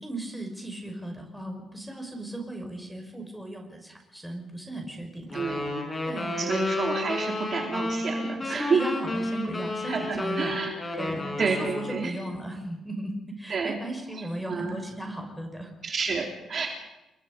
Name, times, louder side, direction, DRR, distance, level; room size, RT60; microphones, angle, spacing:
voice 1, 0.0-5.4 6.1-6.5 7.3-7.4 8.4-10.6 11.0-15.7, right 1 dB, ahead, 2 dB, 5.6 m, -36 dB
sound 1, 5.3-12.1, left 2 dB, 20° left, 6.0 m, -31 dB
voice 2, 5.3-5.8 6.4-8.9 9.9-10.8 11.4-12.1 13.5-13.8 14.2-14.8 15.8-16.7, right 5 dB, 40° right, 1 dB, 3.6 m, -29 dB
29.0 x 22.0 x 5.3 m, 0.98 s
cardioid pair, 155°, 0 cm